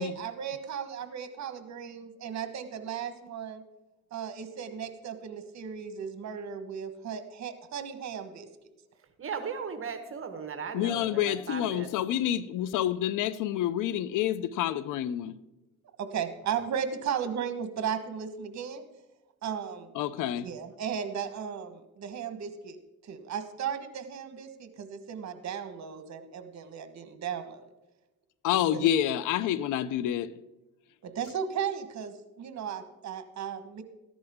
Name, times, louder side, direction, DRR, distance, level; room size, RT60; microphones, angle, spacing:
voice 1, 0.0-3.6 4.1-8.5 16.0-18.8 19.4-19.9 20.2-22.8 23.0-27.7 28.7-28.9 31.0-33.8, right 7 dB, 65° right, 1.5 m, -36 dB
voice 2, 9.2-11.9, right 6 dB, 45° right, 1.4 m, -37 dB
voice 3, 10.7-15.4 19.9-20.5 28.4-30.3, left 11 dB, 90° left, 0.7 m, -28 dB
14.0 x 11.0 x 3.7 m
cardioid pair, 90°, 30 cm